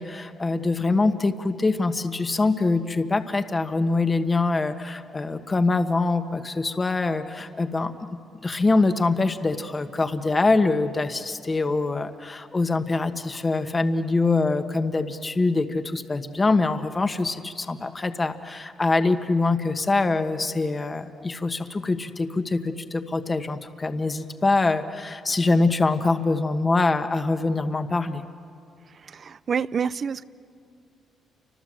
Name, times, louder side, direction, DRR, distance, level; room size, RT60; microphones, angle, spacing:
voice 1, 0.0-7.9 8.4-28.2, left 3 dB, 25° left, 1.4 m, -24 dB
voice 2, 28.9-30.2, right 6 dB, 45° right, 0.6 m, -28 dB
30.0 x 26.0 x 7.7 m
cardioid pair, 90°, 0 cm